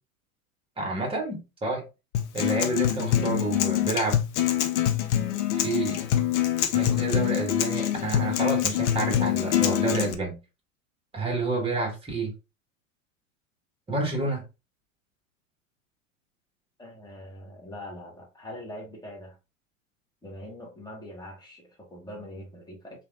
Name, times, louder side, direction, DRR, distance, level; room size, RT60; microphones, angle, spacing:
voice 1, 0.8-1.8 2.3-4.2 5.5-6.0 6.7-10.4 11.1-12.3 13.9-14.4, right 3 dB, 15° right, 1.3 m, -29 dB
Acoustic guitar, 2.1-10.1, left 11 dB, 60° left, 0.6 m, -25 dB
voice 2, 16.8-19.4 20.2-23.1, left 1 dB, 10° left, 1.1 m, -42 dB
3.2 x 2.5 x 2.3 m
figure-of-eight pair, 90°, 41 cm